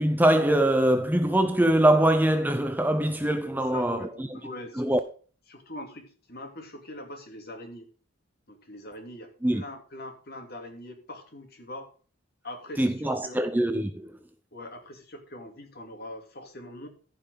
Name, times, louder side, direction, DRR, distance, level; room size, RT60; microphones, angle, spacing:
voice 1, 0.0-4.4 4.8-5.0 9.4-9.6 12.8-14.1, right 1 dB, 10° right, 0.6 m, -23 dB
voice 2, 3.7-4.8 5.5-7.9 8.5-11.9 12.4-13.4 14.5-16.9, left 1 dB, 45° left, 2.7 m, -42 dB
14.5 x 5.6 x 5.2 m
head